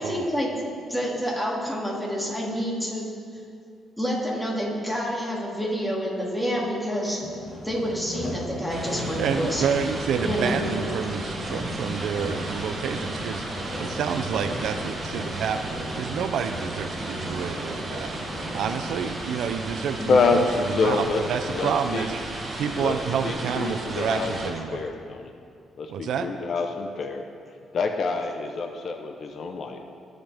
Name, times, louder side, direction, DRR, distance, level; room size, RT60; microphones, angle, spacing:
voice 1, 0.0-3.1 4.0-7.3 7.6-9.6 10.2-10.9 20.0-20.1, equal, 5° left, -4 dB, 2.4 m, -28 dB
Sawing, 7.2-19.3, left 1 dB, 35° left, 2.0 m, -37 dB
sound 1, 8.7-24.5, right 2 dB, 35° right, 1.8 m, -34 dB
voice 2, 9.2-13.4 13.8-18.1 18.5-22.3 22.6-24.9 25.9-26.3, right 7 dB, 75° right, 9 dB, 0.5 m, -29 dB
voice 3, 20.1-20.5 20.7-21.2 21.5-22.1 22.7-22.9 23.2-25.3 25.8-27.2 27.7-29.8, left 4 dB, 55° left, 5 dB, 0.7 m, -26 dB
17.5 x 5.8 x 3.5 m, 2.5 s
cardioid pair, 90°, 0 cm